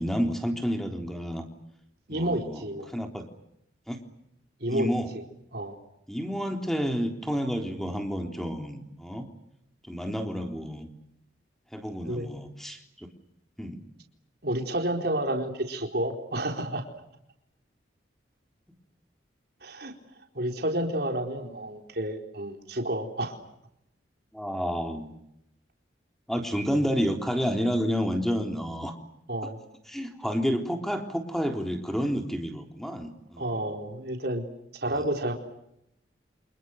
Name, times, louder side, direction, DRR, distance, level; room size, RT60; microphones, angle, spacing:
voice 1, 0.0-1.4 2.1-3.3 3.9-4.0 4.7-5.1 6.1-9.3 9.9-10.9 11.7-13.1 13.6-13.8 24.3-25.1 26.3-29.0 29.9-33.7 35.0-35.1, equal, ahead, 4 dB, 3.6 m, -30 dB
voice 2, 2.1-2.9 4.6-4.9 5.5-5.8 12.1-12.3 14.4-16.8 19.6-19.9 20.3-23.4 29.3-29.6 33.4-34.4 34.8-35.3, right 1 dB, 55° right, 2 dB, 4.4 m, -30 dB
29.0 x 28.0 x 6.6 m, 0.79 s
head